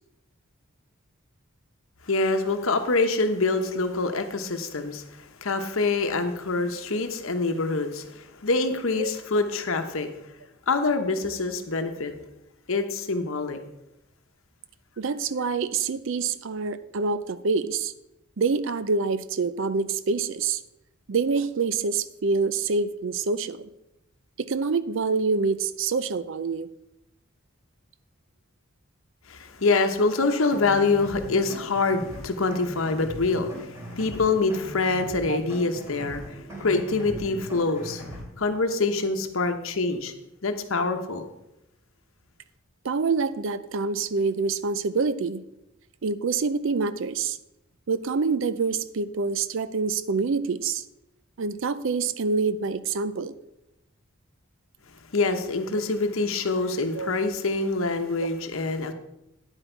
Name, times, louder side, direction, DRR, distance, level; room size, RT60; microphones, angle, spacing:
voice 1, 2.1-10.1 10.7-12.1 12.7-13.6 29.3-40.1 40.4-41.2 55.1-58.9, left 3 dB, 65° left, 7 dB, 0.9 m, -25 dB
voice 2, 15.0-17.9 18.4-20.6 21.1-23.6 24.5-26.7 35.3-35.4 42.8-45.4 46.0-47.4 47.9-50.8 51.4-53.3 57.0-57.1, right 4 dB, 60° right, 15 dB, 0.5 m, -26 dB
sound 1, 30.5-38.2, equal, 15° right, 3.0 m, -39 dB
9.9 x 8.0 x 4.5 m, 0.87 s
head